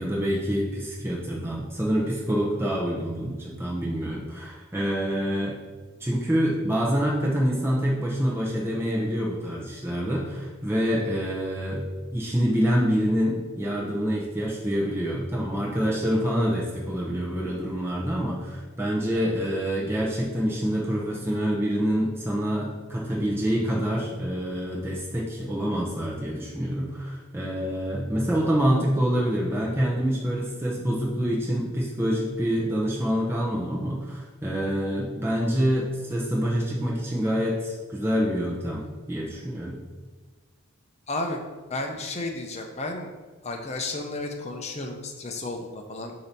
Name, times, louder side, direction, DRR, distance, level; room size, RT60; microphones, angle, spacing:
voice 1, 0.0-5.6 6.0-11.9 12.1-39.8, equal, 10° right, -4 dB, 0.8 m, -26 dB
voice 2, 41.1-41.4 41.7-43.1 43.4-46.1, left 2 dB, 30° left, 3 dB, 0.7 m, -32 dB
7.6 x 2.9 x 5.3 m, 1.3 s
head